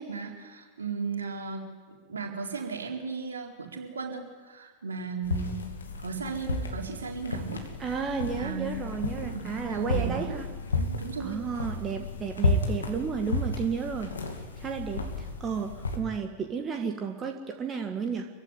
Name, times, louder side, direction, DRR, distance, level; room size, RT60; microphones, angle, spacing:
voice 1, 0.0-5.7 6.0-7.6 8.2-8.9 9.2-10.4 10.7-11.4, right 4 dB, 70° right, 1 dB, 4.0 m, -36 dB
sound 1, 5.2-16.0, left 2 dB, 70° left, 2.6 m, -32 dB
voice 2, 7.8-10.5 11.2-14.2 14.6-18.3, right 6 dB, 25° right, 4 dB, 1.8 m, -32 dB
24.5 x 15.5 x 9.7 m, 1.5 s
figure-of-eight pair, 90°, 0 cm